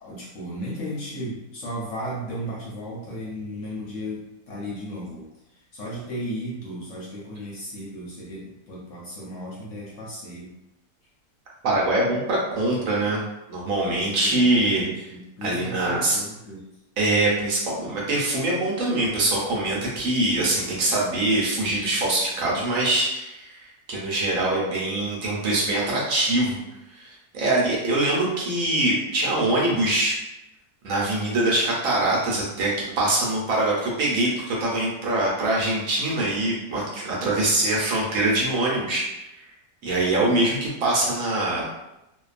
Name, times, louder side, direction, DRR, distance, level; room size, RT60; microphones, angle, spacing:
voice 1, 0.0-5.3 5.5-10.5 14.1-16.7, equal, 65° left, -5 dB, 0.8 m, -35 dB
voice 2, 11.6-13.2 13.5-15.1 15.4-16.2 17.0-26.6 26.9-30.2 30.8-39.1 39.8-41.6, right 2 dB, 65° right, -4 dB, 1.0 m, -23 dB
2.6 x 2.2 x 2.4 m, 0.92 s
omnidirectional pair, 1.6 m